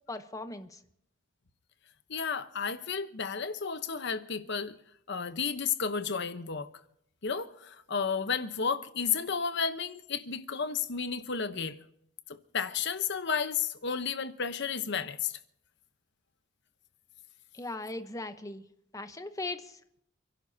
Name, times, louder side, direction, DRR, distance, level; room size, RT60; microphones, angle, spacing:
voice 1, 0.1-0.8 17.5-18.6 18.9-20.0, left 2 dB, 15° left, 0.9 m, -39 dB
voice 2, 2.1-4.8 5.1-6.7 7.2-11.8 12.3-15.3, left 6 dB, 60° left, 1.0 m, -32 dB
29.0 x 11.5 x 2.8 m
head